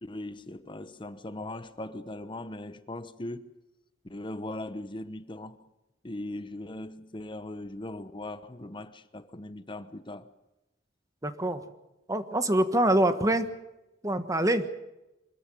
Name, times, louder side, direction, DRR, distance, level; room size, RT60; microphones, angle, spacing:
voice 1, 0.0-3.5 4.1-5.7 6.0-10.3, left 1 dB, 30° left, 1.0 m, -39 dB
voice 2, 11.2-11.6 12.1-13.5 14.0-14.7, right 1 dB, 20° right, 1.4 m, -25 dB
24.5 x 14.0 x 9.9 m
head